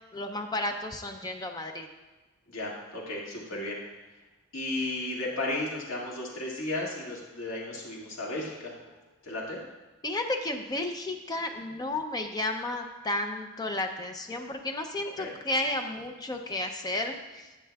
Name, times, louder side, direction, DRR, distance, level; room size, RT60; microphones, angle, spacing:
voice 1, 0.1-1.9 10.0-17.5, left 1 dB, 20° left, 4 dB, 0.5 m, -32 dB
voice 2, 2.5-3.8 4.5-9.0 9.2-9.6 15.2-15.3, left 2 dB, 65° left, -4 dB, 2.0 m, -34 dB
10.5 x 8.6 x 2.3 m, 1.2 s
head